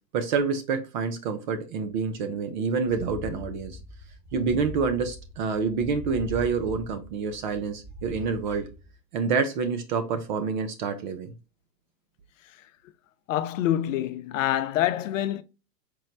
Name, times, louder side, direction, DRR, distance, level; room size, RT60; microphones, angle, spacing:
voice 1, 0.1-3.8 4.3-8.7 9.1-11.3, right 5 dB, 35° right, 0.4 m, -27 dB
sound 1, 2.9-8.9, left 1 dB, 15° left, 0.8 m, -41 dB
voice 2, 13.3-15.4, left 12 dB, 55° left, 0.5 m, -26 dB
4.5 x 2.0 x 3.7 m
hypercardioid pair, 120°, 48 cm